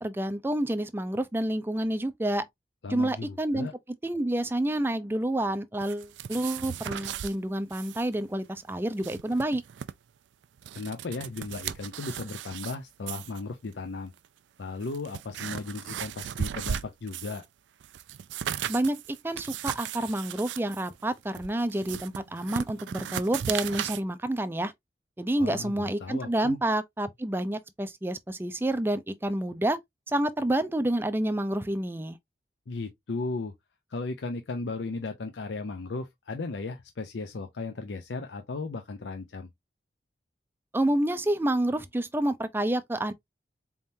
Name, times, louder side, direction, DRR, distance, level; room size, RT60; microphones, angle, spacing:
voice 1, 0.0-2.4 2.9-3.7 4.0-9.6 18.7-19.0 19.2-24.7 25.2-29.8 30.1-32.2 40.7-43.1, right 1 dB, 10° right, 0.4 m, -28 dB
voice 2, 2.8-3.7 10.7-14.1 14.6-17.4 25.4-26.6 32.7-33.5 33.9-39.5, left 3 dB, 80° left, 0.6 m, -36 dB
sound 1, 5.8-7.3 7.7-8.1 8.3-8.4 8.8-9.9 10.4-12.8 13.1-13.4 14.2-14.3 14.8-17.5 17.8-24.0, right 9 dB, 85° right, 0.4 m, -36 dB
4.2 x 3.6 x 2.6 m
head